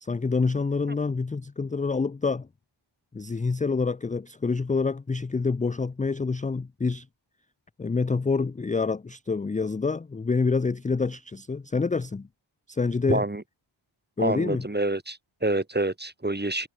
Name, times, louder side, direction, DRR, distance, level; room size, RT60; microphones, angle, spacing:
voice 1, 0.0-2.5 3.1-7.1 7.8-12.3 12.7-13.2 14.2-14.7, left 4 dB, 15° left, 0.4 m, -27 dB
voice 2, 13.1-13.4 14.2-16.7, right 2 dB, 20° right, 2.8 m, -27 dB
wide cardioid pair, 85°, 50 cm